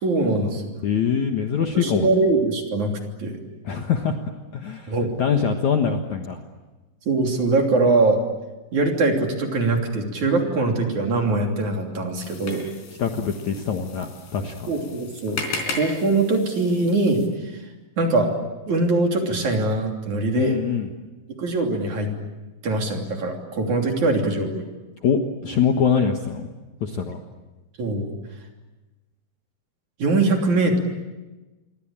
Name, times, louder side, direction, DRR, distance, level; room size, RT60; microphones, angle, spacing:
voice 1, 0.0-0.7 1.7-3.4 4.9-5.1 7.1-8.2 8.7-12.7 14.7-17.2 18.0-18.3 18.7-20.6 21.4-22.1 22.6-24.6 27.8-28.1 30.0-30.8, right 2 dB, 45° right, 2 dB, 4.1 m, -22 dB
voice 2, 0.8-2.1 3.7-4.1 4.5-6.4 13.0-14.7 20.3-20.9 25.0-26.5 26.8-27.2, left 7 dB, 60° left, 4 dB, 2.2 m, -23 dB
sound 1, 12.2-17.3, left 3 dB, 75° left, 6.1 m, -36 dB
27.5 x 24.0 x 8.8 m, 1.1 s
omnidirectional pair, 5.0 m